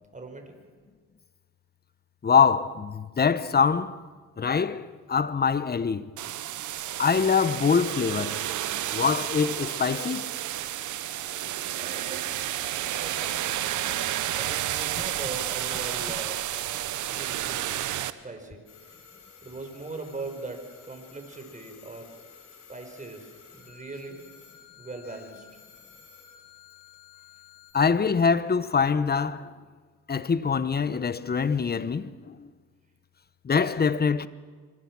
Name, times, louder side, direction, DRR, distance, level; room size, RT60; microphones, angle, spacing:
voice 1, 0.1-0.6 11.7-12.5 12.9-13.6 14.4-16.5 17.1-19.0 19.4-22.2 22.7-24.2 24.8-25.5, right 3 dB, 25° right, 5.2 m, -40 dB
voice 2, 2.2-4.0 4.4-6.1 7.0-8.5 8.9-10.4 27.7-29.5 30.1-32.5 33.4-34.3, left 6 dB, 30° left, 1.1 m, -24 dB
sound 1, 6.2-18.1, right 12 dB, 75° right, 1.1 m, -31 dB
sound 2, 18.7-27.7, left 7 dB, 85° left, 5.2 m, -52 dB
26.5 x 25.0 x 6.2 m
cardioid pair, 90°, 30 cm